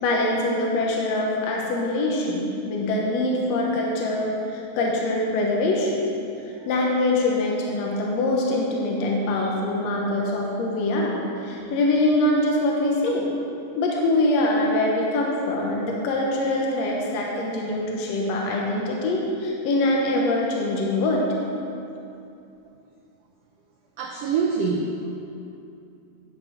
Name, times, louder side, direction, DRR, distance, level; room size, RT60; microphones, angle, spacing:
voice 1, 0.0-6.1 6.7-13.2 13.8-21.2, left 2 dB, 65° left, -2 dB, 1.9 m, -24 dB
voice 2, 24.0-25.1, right 4 dB, 80° right, 1 dB, 1.4 m, -25 dB
10.5 x 6.6 x 5.0 m, 2.7 s
omnidirectional pair, 3.6 m